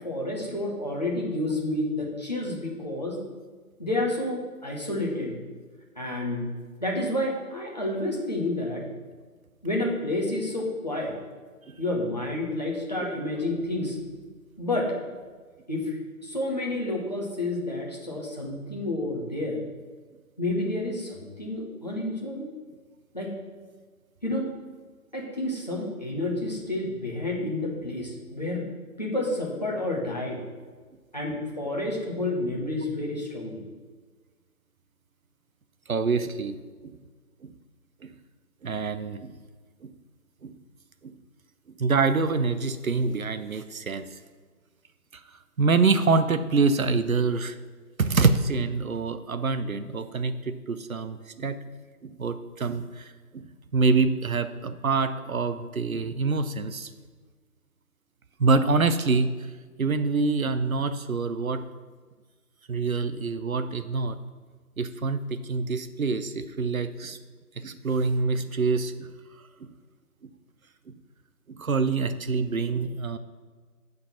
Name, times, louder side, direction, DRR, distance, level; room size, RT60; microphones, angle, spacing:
voice 1, 0.0-3.2 3.8-5.4 6.0-6.5 6.8-8.8 9.6-11.2 11.8-14.0 14.6-14.9 15.7-19.6 20.4-22.5 23.1-23.3 24.2-24.6 25.1-28.6 29.0-30.4 31.1-33.6, left 1 dB, 30° left, -2 dB, 1.0 m, -30 dB
voice 2, 35.9-36.6 36.8-36.9 37.4-37.5 38.0-38.1 38.6-39.3 39.8-39.9 40.4-40.6 41.0-41.1 41.8-44.0 45.6-47.6 48.0-51.6 52.0-53.5 53.7-56.9 58.4-59.3 59.8-61.6 62.7-64.2 64.8-67.2 67.6-69.1 71.6-73.2, right 4 dB, 65° right, 10 dB, 0.7 m, -26 dB
9.0 x 4.0 x 5.7 m, 1.5 s
figure-of-eight pair, 180°, 45 cm